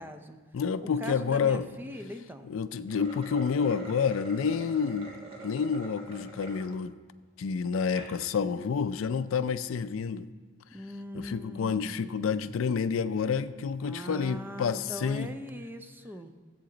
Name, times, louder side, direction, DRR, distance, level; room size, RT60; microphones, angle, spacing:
voice 1, 0.0-0.4 0.8-2.5 10.7-12.3 13.8-16.3, equal, 10° right, 7 dB, 0.5 m, -41 dB
voice 2, 0.5-1.7 2.5-5.1 5.4-7.0 7.4-10.3 11.1-15.3, left 6 dB, 75° left, 13 dB, 0.4 m, -29 dB
sound 1, 2.8-6.7 7.2-7.3 7.8-8.2, right 2 dB, 30° right, 1.4 m, -45 dB
14.5 x 8.0 x 3.9 m, 1.4 s
head